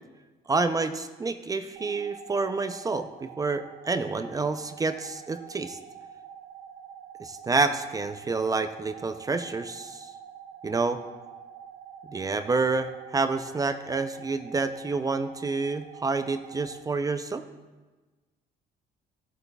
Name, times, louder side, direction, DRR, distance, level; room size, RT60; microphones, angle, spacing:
voice 1, 0.5-5.8 7.2-10.1 10.6-11.0 12.1-17.4, right 3 dB, 20° right, 10 dB, 0.4 m, -28 dB
sound 1, 1.8-16.8, right 7 dB, 85° right, 0.7 m, -47 dB
16.5 x 8.1 x 2.2 m, 1.2 s
cardioid pair, 110°, 17 cm